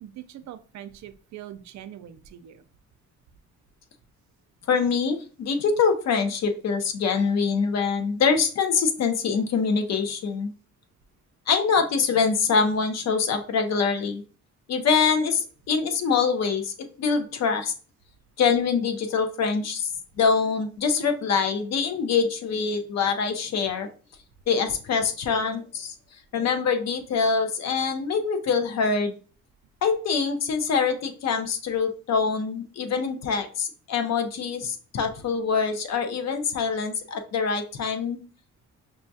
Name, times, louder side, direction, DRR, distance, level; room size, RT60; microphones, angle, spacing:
voice 1, 0.0-2.5, right 11 dB, 65° right, 11 dB, 0.5 m, -42 dB
voice 2, 4.7-10.5 11.5-14.2 14.7-17.7 18.4-19.9 20.2-23.9 24.5-25.9 26.3-29.1 29.8-38.2, left 5 dB, 60° left, 7 dB, 0.7 m, -24 dB
5.7 x 2.3 x 2.6 m, 0.39 s
cardioid pair, 90°, 30 cm